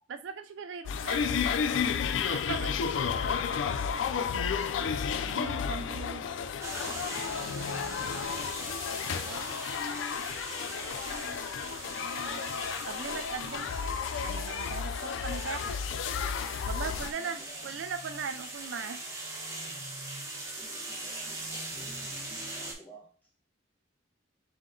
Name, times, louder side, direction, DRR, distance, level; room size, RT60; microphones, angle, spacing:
voice 1, 0.1-1.4 2.3-2.7 5.2-6.2 9.1-9.6 11.0-11.4 11.9-13.7 14.2-15.7 16.7-19.0, right 6 dB, 70° right, 0.4 m, -39 dB
sound 1, 0.9-17.1, left 6 dB, 75° left, 0.4 m, -32 dB
voice 2, 4.0-4.7 5.5-8.7 10.4-11.4 16.9-17.8 19.7-19.8 20.6-23.4, right 1 dB, 10° left, 1.5 m, -55 dB
sound 2, 6.6-22.7, right 2 dB, 15° right, 1.0 m, -41 dB
3.7 x 3.3 x 3.7 m
head